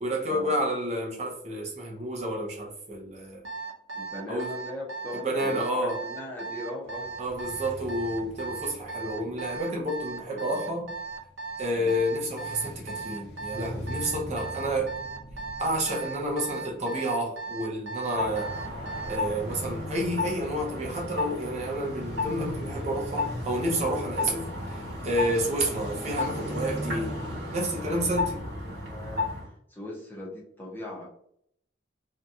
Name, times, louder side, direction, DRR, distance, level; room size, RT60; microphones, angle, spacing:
voice 1, 0.0-3.4 4.3-4.6 5.1-6.0 7.2-10.9 11.6-14.9 15.6-18.5 19.1-27.1 27.5-28.4, right 1 dB, 35° right, 0.5 m, -30 dB
Alarm, 3.4-19.3, right 4 dB, 80° right, 0.6 m, -37 dB
voice 2, 3.9-7.1 11.8-12.0 25.3-25.5 27.7-28.0 28.5-31.1, left 1 dB, 10° left, 0.6 m, -40 dB
sound 1, 6.8-24.1, equal, 65° left, 0.6 m, -43 dB
sound 2, 18.1-29.5, left 2 dB, 65° right, 1.1 m, -33 dB
2.7 x 2.2 x 2.6 m
head